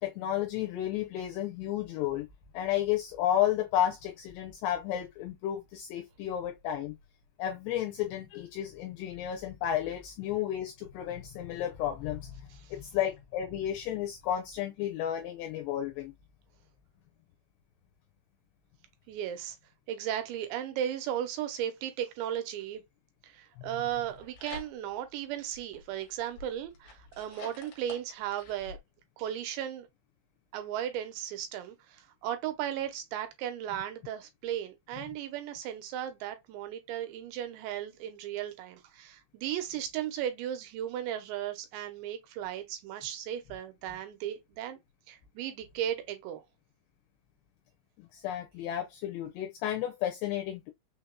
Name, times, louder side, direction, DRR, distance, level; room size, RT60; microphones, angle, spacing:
voice 1, 0.0-2.3 2.5-7.0 7.4-16.1 48.0-50.7, left 11 dB, 80° left, 2.6 m, -32 dB
voice 2, 19.1-19.6 19.9-22.8 23.2-28.8 29.2-29.9 30.5-44.8 45.1-46.4, right 10 dB, 80° right, 3.0 m, -36 dB
sound 1, 23.9-25.1 25.5-28.8, left 4 dB, 60° left, 2.4 m, -49 dB
6.4 x 2.8 x 2.2 m
omnidirectional pair, 5.1 m